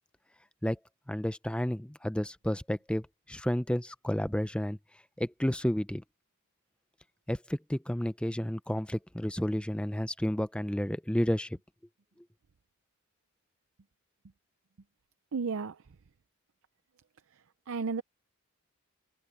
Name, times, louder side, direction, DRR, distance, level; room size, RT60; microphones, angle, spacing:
voice 1, 1.1-4.8 5.2-6.0 7.3-11.6, equal, 5° left, 0.6 m, -31 dB
voice 2, 15.3-15.8 17.7-18.0, right 5 dB, 65° right, 0.5 m, -32 dB
head